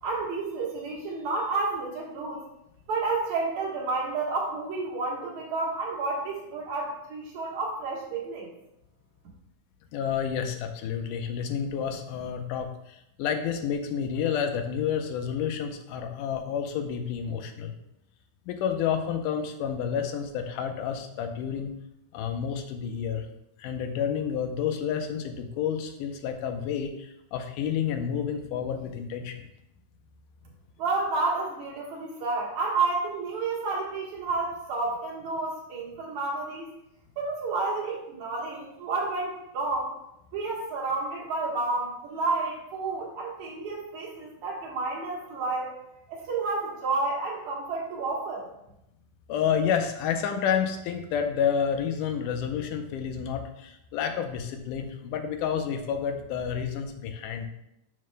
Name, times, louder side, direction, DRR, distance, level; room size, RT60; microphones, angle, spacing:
voice 1, 0.0-2.4 2.9-8.5 9.2-9.3 30.8-36.7 37.2-40.0 40.3-45.7 46.1-48.5, right 3 dB, 65° right, -3 dB, 2.8 m, -30 dB
voice 2, 9.9-17.7 18.5-21.7 22.1-23.3 23.6-29.4 49.3-57.5, left 7 dB, 85° left, 6 dB, 2.3 m, -30 dB
10.5 x 6.4 x 2.2 m, 0.83 s
omnidirectional pair, 3.7 m